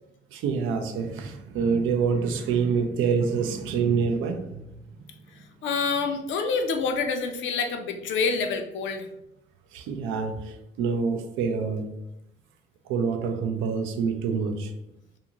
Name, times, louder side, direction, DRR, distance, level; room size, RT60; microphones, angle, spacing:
voice 1, 0.3-5.3 9.7-11.9 12.9-14.7, right 5 dB, 90° right, 5 dB, 0.4 m, -27 dB
voice 2, 5.6-9.1, left 4 dB, 75° left, 5 dB, 0.5 m, -27 dB
2.5 x 2.5 x 2.8 m, 0.86 s
cardioid pair, 90°, 20 cm